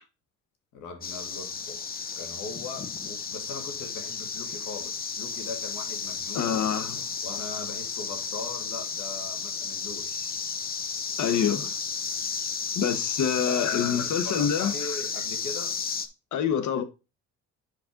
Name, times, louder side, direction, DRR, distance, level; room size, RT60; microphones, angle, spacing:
voice 1, 0.7-1.8 2.2-6.7 7.2-10.3 13.2-15.8, left 4 dB, 90° left, 2.5 m, -40 dB
sound 1, 1.0-16.1, left 5 dB, 30° left, 0.8 m, -33 dB
voice 2, 6.3-7.0 11.2-11.7 12.7-14.7 16.3-16.8, left 8 dB, 75° left, 1.3 m, -26 dB
7.8 x 5.3 x 3.9 m
cardioid pair, 110°, 30 cm